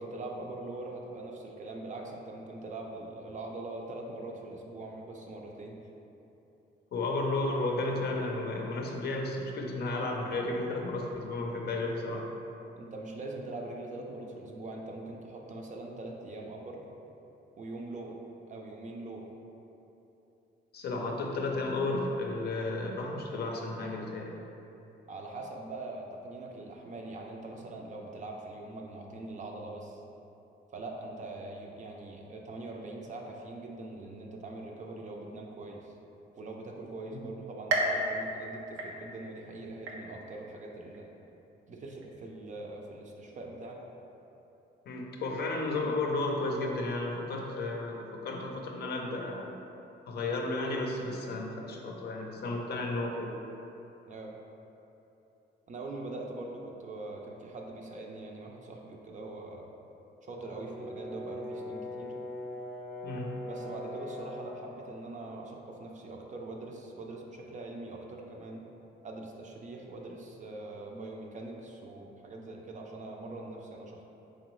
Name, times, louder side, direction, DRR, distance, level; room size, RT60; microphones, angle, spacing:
voice 1, 0.0-5.8 12.8-16.8 17.6-18.2 18.5-19.3 25.1-30.0 30.7-35.9 36.4-41.1 41.7-43.9 54.1-54.3 55.7-59.6 60.2-62.1 63.4-68.7 69.0-74.0, right 2 dB, 40° right, 0 dB, 0.5 m, -42 dB
voice 2, 6.9-12.3 20.7-24.4 37.1-37.2 44.9-49.5 50.1-53.3 63.0-63.3, left 2 dB, 55° left, 0 dB, 0.5 m, -33 dB
sound 1, 37.7-39.4 39.9-40.4 40.9-41.0 42.0-42.1, right 1 dB, 85° right, 0.5 m, -33 dB
Brass instrument, 60.3-64.6, left 1 dB, 5° left, 0.6 m, -41 dB
3.8 x 2.9 x 3.0 m, 3.0 s
cardioid pair, 90°, 20 cm